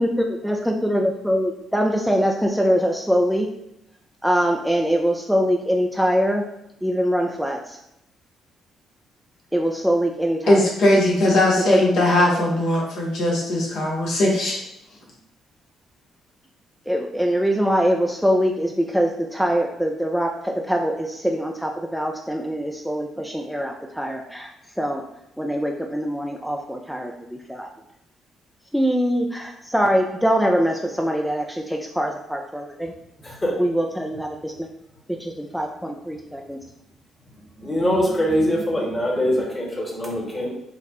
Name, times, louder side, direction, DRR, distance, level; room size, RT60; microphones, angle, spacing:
voice 1, 0.0-3.5 4.2-6.4 6.8-7.8 9.5-10.7 11.7-12.4 16.9-25.0 25.4-27.7 28.7-32.9 33.6-34.5 35.2-36.6, equal, ahead, 1 dB, 0.3 m, -23 dB
voice 2, 10.5-14.6, left 1 dB, 60° left, -4 dB, 0.8 m, -19 dB
voice 3, 37.6-40.5, equal, 20° left, -2 dB, 1.1 m, -23 dB
3.9 x 2.1 x 2.7 m, 0.82 s
figure-of-eight pair, 40°, 0 cm